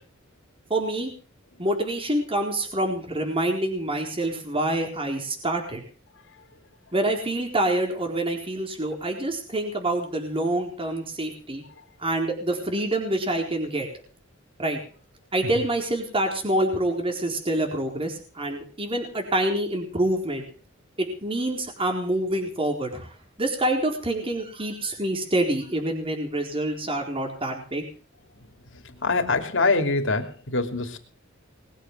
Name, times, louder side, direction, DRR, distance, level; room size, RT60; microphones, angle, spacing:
voice 1, 0.7-1.1 1.6-5.8 6.9-11.6 12.0-13.9 14.6-14.8 15.3-20.4 21.0-23.1 23.4-27.8, right 1 dB, 25° right, 2 dB, 4.2 m, -26 dB
voice 2, 29.0-31.0, left 3 dB, 65° left, 5 dB, 3.2 m, -24 dB
21.0 x 8.2 x 7.6 m, 0.41 s
head